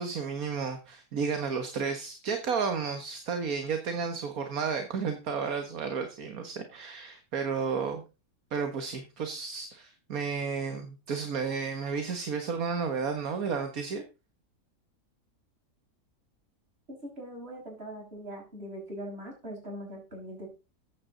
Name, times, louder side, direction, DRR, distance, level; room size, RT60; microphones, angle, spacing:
voice 1, 0.0-8.0 8.5-14.0, right 5 dB, 65° right, 7 dB, 1.9 m, -32 dB
voice 2, 16.9-20.5, equal, 40° right, 0 dB, 6.5 m, -41 dB
14.5 x 9.5 x 3.9 m, 0.30 s
omnidirectional pair, 1.6 m